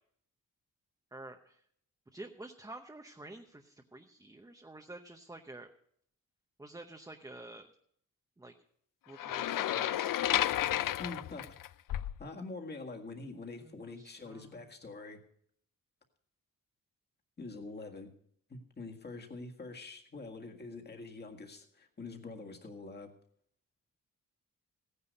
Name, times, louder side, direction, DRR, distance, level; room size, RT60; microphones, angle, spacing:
voice 1, 1.1-1.6 2.1-5.7 6.6-7.7 8.4-8.5 9.1-10.4 13.6-14.7, right 2 dB, 10° right, 4 dB, 0.8 m, -49 dB
sound 1, 9.2-12.2, left 12 dB, 75° left, 0.5 m, -32 dB
voice 2, 11.0-11.6 12.2-15.2 17.4-18.1 18.5-23.1, left 3 dB, 30° left, 3 dB, 1.8 m, -45 dB
16.5 x 9.9 x 5.3 m, 0.65 s
wide cardioid pair, 170°, 33 cm